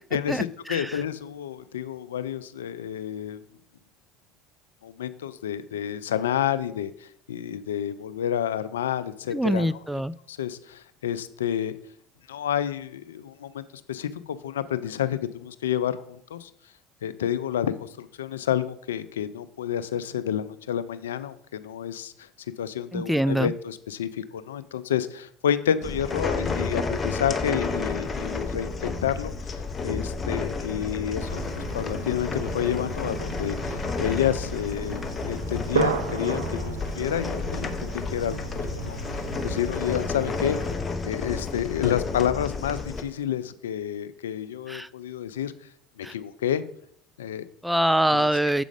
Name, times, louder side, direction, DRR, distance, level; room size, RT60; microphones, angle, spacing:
voice 1, 0.1-3.4 4.8-9.8 10.3-11.7 12.3-13.6 13.9-16.5 17.0-22.3 22.6-29.3 29.8-38.4 38.8-39.0 39.4-40.6 41.0-45.5 46.0-46.6 47.2-47.4 48.1-48.3, left 10 dB, 85° left, 13 dB, 0.4 m, -29 dB
voice 2, 0.7-1.0 9.3-10.1 22.9-23.5 44.7-44.9 46.0-46.1 47.6-48.6, right 1 dB, 5° right, 17 dB, 0.3 m, -24 dB
sound 1, 25.8-43.0, left 4 dB, 25° left, 1.0 m, -31 dB
sound 2, 31.2-40.8, right 6 dB, 85° right, 0.8 m, -34 dB
7.5 x 5.1 x 5.0 m, 0.67 s
hypercardioid pair, 75°, 0 cm